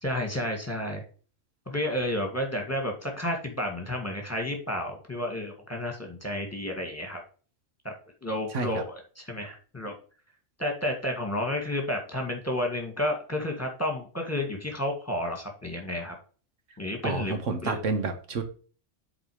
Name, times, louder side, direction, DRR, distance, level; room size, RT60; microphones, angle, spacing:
voice 1, 0.0-1.0 1.7-7.2 7.8-7.9 8.2-10.0 10.6-16.1 16.8-17.3 17.6-17.8, left 1 dB, 10° left, 2 dB, 2.0 m, -31 dB
voice 2, 8.5-8.8 17.0-18.4, right 4 dB, 80° right, 7 dB, 1.5 m, -29 dB
7.8 x 4.1 x 4.9 m, 0.38 s
omnidirectional pair, 1.3 m